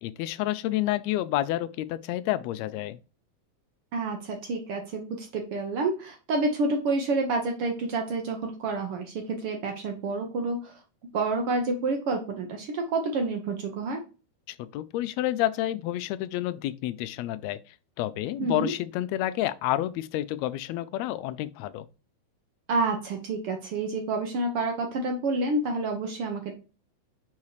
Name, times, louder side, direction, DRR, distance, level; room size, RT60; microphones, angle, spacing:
voice 1, 0.0-3.0 14.5-21.9, left 14 dB, 80° left, 1.7 m, -29 dB
voice 2, 3.9-10.8 11.1-14.0 18.4-18.7 22.7-26.5, right 3 dB, 60° right, 1.6 m, -29 dB
5.6 x 4.8 x 4.8 m
omnidirectional pair, 3.4 m